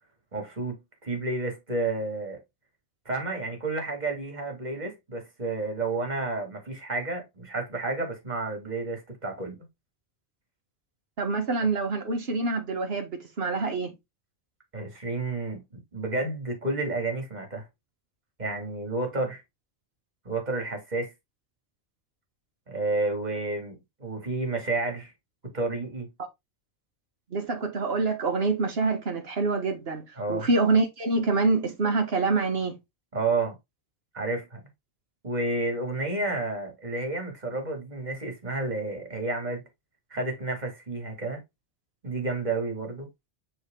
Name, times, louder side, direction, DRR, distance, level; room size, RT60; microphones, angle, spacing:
voice 1, 0.3-0.8 1.0-2.4 3.1-9.7 14.7-17.6 18.4-19.4 20.2-21.1 22.7-25.1 25.5-26.1 30.2-30.5 33.1-33.5 34.1-34.6 35.2-39.6 40.1-41.4 42.0-43.1, right 2 dB, 40° right, 2.6 m, -30 dB
voice 2, 11.2-13.9 27.3-30.0 30.3-32.7, right 3 dB, 60° right, 1.7 m, -26 dB
6.4 x 4.4 x 3.7 m
omnidirectional pair, 1.2 m